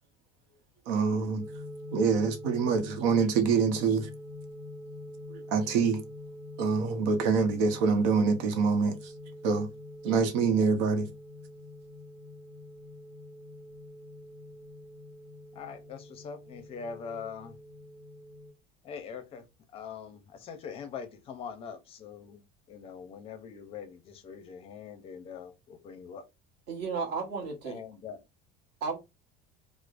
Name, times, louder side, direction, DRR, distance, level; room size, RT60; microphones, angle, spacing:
voice 1, 0.9-1.4 1.9-4.1 5.3-6.0 6.6-9.0 9.4-9.7 10.0-11.1, right 5 dB, 85° right, 0.8 m, -25 dB
sound 1, 1.4-18.5, left 2 dB, 30° right, 1.0 m, -45 dB
voice 2, 15.5-17.6 18.8-19.5 19.7-26.2 27.6-28.2, left 6 dB, 25° left, 0.5 m, -43 dB
voice 3, 26.7-27.8 28.8-29.0, right 5 dB, 50° right, 1.2 m, -33 dB
4.7 x 2.0 x 2.5 m
cardioid pair, 175°, 21 cm